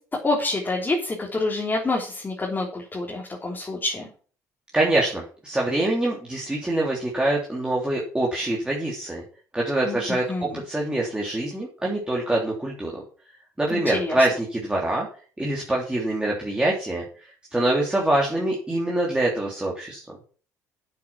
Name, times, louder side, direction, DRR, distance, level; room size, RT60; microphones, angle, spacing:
voice 1, 0.2-4.1 9.9-10.0 10.3-10.6 13.7-14.2, left 2 dB, 20° left, -2 dB, 3.6 m, -27 dB
voice 2, 4.7-9.2 9.5-13.0 13.6-15.1 15.4-17.0 17.5-20.2, right 1 dB, 10° right, -3 dB, 3.3 m, -25 dB
9.2 x 8.4 x 6.1 m, 0.41 s
figure-of-eight pair, 55°, 9 cm